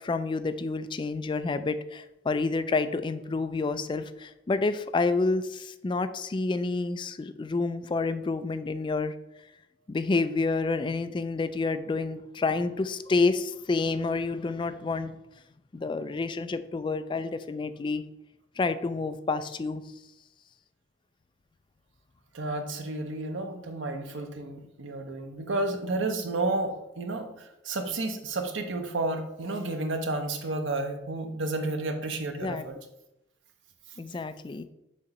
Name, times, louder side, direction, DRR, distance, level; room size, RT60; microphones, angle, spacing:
voice 1, 0.0-9.1 9.9-15.1 15.7-18.0 18.6-19.8 32.4-32.7 34.0-34.6, left 3 dB, 25° left, 10 dB, 0.3 m, -29 dB
voice 2, 22.3-27.3 27.7-32.7, right 2 dB, 85° right, 5 dB, 0.8 m, -31 dB
6.4 x 2.9 x 5.3 m, 0.89 s
head